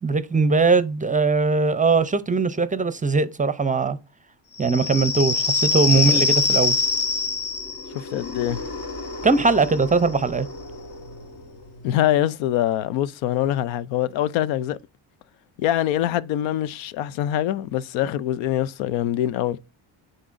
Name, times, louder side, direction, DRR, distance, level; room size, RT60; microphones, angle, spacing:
voice 1, 0.0-4.0 4.6-6.8 9.2-10.5, right 4 dB, 20° right, 0.5 m, -20 dB
sound 1, 4.6-11.8, left 3 dB, 50° left, 1.2 m, -25 dB
voice 2, 7.9-8.6 11.8-14.8 15.6-19.6, left 12 dB, 85° left, 0.5 m, -24 dB
9.9 x 4.0 x 2.5 m
cardioid pair, 85°, 45 cm